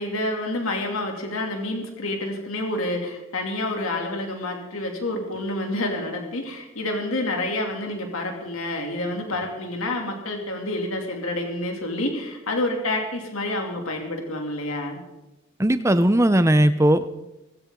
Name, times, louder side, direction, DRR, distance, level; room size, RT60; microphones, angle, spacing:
voice 1, 0.0-15.0, left 1 dB, 85° left, 2 dB, 2.8 m, -28 dB
voice 2, 15.6-17.1, right 1 dB, 15° right, 13 dB, 0.6 m, -18 dB
18.5 x 16.0 x 3.8 m, 0.96 s
head